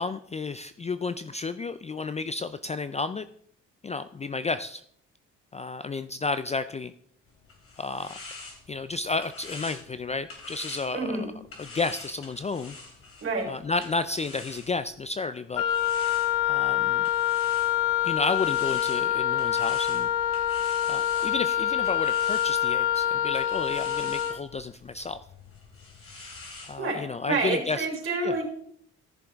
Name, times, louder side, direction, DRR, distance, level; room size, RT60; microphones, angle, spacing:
voice 1, 0.0-3.3 3.8-4.8 5.5-6.9 7.8-8.2 8.7-11.2 11.6-12.8 13.5-15.6 16.4-17.0 18.0-20.1 20.8-25.2 26.6-27.9 28.2-28.4, left 3 dB, 20° left, 12 dB, 0.4 m, -32 dB
sound 1, 7.3-15.1 15.7-26.8, left 3 dB, 45° left, 3.0 m, -46 dB
voice 2, 10.9-11.3 13.2-13.5 26.8-28.4, right 3 dB, 45° right, 1 dB, 4.2 m, -28 dB
Wind instrument woodwind instrument, 15.6-24.4, left 11 dB, 85° left, 0.7 m, -26 dB
14.0 x 6.9 x 3.6 m, 0.64 s
cardioid pair, 90°, 30 cm